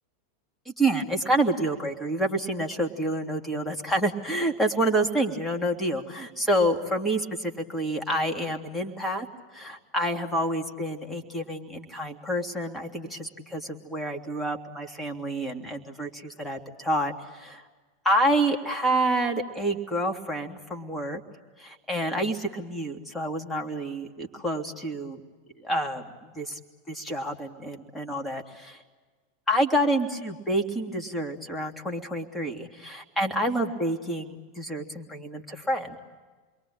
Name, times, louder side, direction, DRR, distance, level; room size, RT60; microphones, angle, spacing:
voice 1, 0.8-9.3 9.5-17.6 18.0-21.2 21.6-25.2 25.6-26.6 26.9-28.8 29.5-36.0, right 1 dB, 5° left, 2 dB, 3.0 m, -28 dB
28.5 x 22.5 x 8.9 m, 1.3 s
figure-of-eight pair, 90°, 0 cm